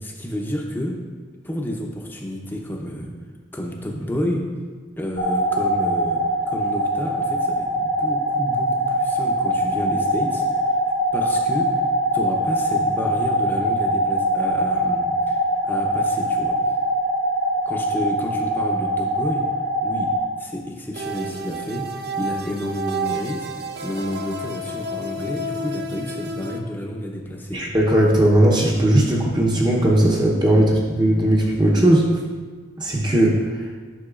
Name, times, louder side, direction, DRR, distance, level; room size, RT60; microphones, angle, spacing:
voice 1, 0.0-1.0 1.4-3.1 3.5-4.5 5.0-10.8 11.1-11.8 12.1-16.6 17.7-19.5 19.8-27.6 30.5-30.7, equal, 10° left, 0 dB, 0.7 m, -30 dB
sound 1, 5.2-20.2, equal, 45° left, 1.0 m, -22 dB
sound 2, 20.9-26.6, right 1 dB, 55° right, 0.5 m, -30 dB
voice 2, 27.5-32.1 32.8-33.6, right 1 dB, 20° right, -3 dB, 0.8 m, -18 dB
9.7 x 5.9 x 2.4 m, 1.5 s
head